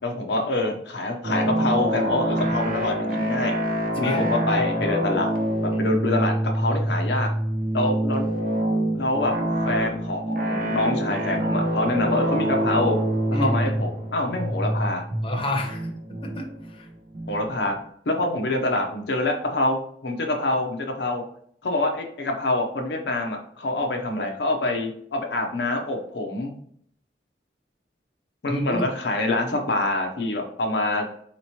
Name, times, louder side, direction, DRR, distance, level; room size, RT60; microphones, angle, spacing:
voice 1, 0.0-3.6 4.0-5.3 5.6-7.3 7.7-8.3 8.9-9.3 9.6-13.0 13.3-15.0 17.3-17.8 18.1-21.2 21.6-26.5 28.4-31.1, left 2 dB, 75° left, 3 dB, 0.6 m, -26 dB
sound 1, 1.2-17.8, right 1 dB, 50° right, 0.7 m, -26 dB
voice 2, 4.0-4.3 4.7-4.9 5.7-5.9 12.1-12.2 13.3-13.6 15.2-15.9 16.2-16.9 28.5-28.9, left 1 dB, 30° left, 2 dB, 0.7 m, -30 dB
4.3 x 3.0 x 2.8 m, 0.65 s
head